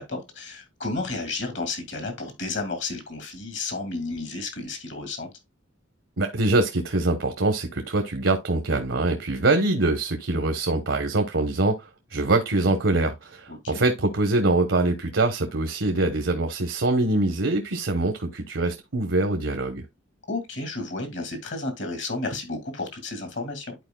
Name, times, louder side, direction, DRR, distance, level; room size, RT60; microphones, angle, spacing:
voice 1, 0.0-5.3 13.5-13.8 20.3-23.8, left 3 dB, 70° left, 2.1 m, -32 dB
voice 2, 6.2-19.8, right 2 dB, 80° right, 1.0 m, -24 dB
11.5 x 4.5 x 2.2 m
head